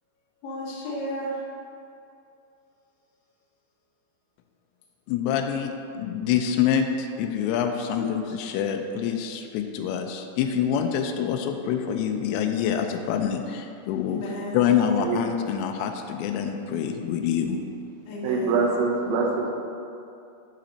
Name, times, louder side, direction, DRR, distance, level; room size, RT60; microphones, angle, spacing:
voice 1, 0.4-1.4 14.1-14.6 18.0-18.6, equal, 60° left, -7 dB, 2.6 m, -33 dB
voice 2, 5.1-14.2 14.5-17.7, left 8 dB, 85° left, 5 dB, 2.5 m, -26 dB
voice 3, 18.2-19.5, right 4 dB, 80° right, 0 dB, 2.5 m, -24 dB
12.5 x 5.1 x 2.9 m, 2.5 s
omnidirectional pair, 5.5 m